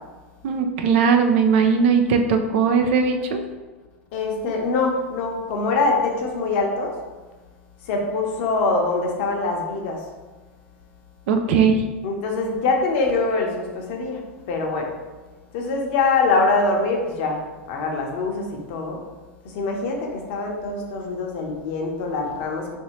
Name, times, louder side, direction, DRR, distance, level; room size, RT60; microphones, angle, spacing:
voice 1, 0.4-3.4 11.3-11.8, right 5 dB, 60° right, 5 dB, 0.4 m, -19 dB
voice 2, 4.1-6.9 7.9-10.0 12.0-14.2 14.5-14.9 15.5-17.4 17.7-19.0 19.5-22.8, left 3 dB, 60° left, 1 dB, 0.7 m, -24 dB
3.0 x 2.6 x 3.0 m, 1.3 s
hypercardioid pair, 95°, 7 cm